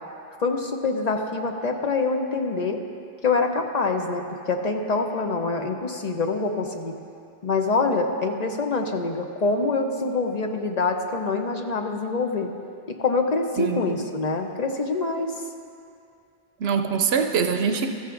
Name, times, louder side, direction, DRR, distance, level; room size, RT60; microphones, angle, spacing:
voice 1, 0.4-2.8 3.2-6.9 7.4-12.5 12.9-15.3, left 3 dB, 45° left, 4 dB, 0.8 m, -25 dB
voice 2, 13.6-14.1 16.6-17.9, right 6 dB, 75° right, 5 dB, 0.8 m, -24 dB
15.0 x 13.5 x 2.5 m, 2.5 s
omnidirectional pair, 1.1 m